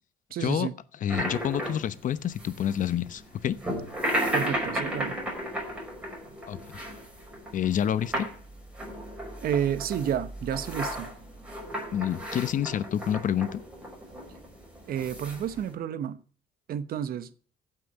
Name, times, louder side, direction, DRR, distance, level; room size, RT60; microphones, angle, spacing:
voice 1, 0.3-0.7 4.3-5.2 9.4-11.1 14.9-16.2 16.7-17.3, right 9 dB, 60° right, 1.0 m, -30 dB
voice 2, 1.0-3.6 6.5-6.8 7.5-8.3 11.9-13.6, left 10 dB, 50° left, 0.9 m, -28 dB
sound 1, 1.1-15.7, equal, 5° right, 5.4 m, -35 dB
15.5 x 5.9 x 7.9 m
cardioid pair, 110°, 17 cm